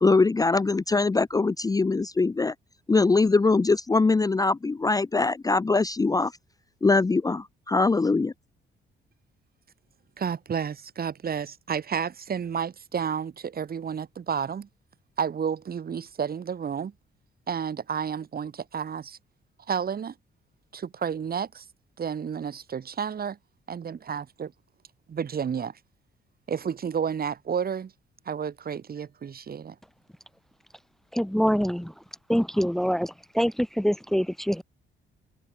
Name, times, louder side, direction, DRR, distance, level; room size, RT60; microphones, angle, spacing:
voice 1, 0.0-2.5 2.9-6.3 6.8-8.3, left 3 dB, 20° left, 0.7 m, -22 dB
voice 2, 10.2-14.7 15.2-16.9 17.5-19.2 19.7-20.1 20.7-21.6 22.0-23.4 23.7-24.5 25.1-25.8 26.5-27.9 28.3-29.8, right 7 dB, 50° right, 6.0 m, -31 dB
voice 3, 31.1-31.9 32.3-34.6, equal, ahead, 2.2 m, -25 dB
open air
cardioid pair, 90°, 20 cm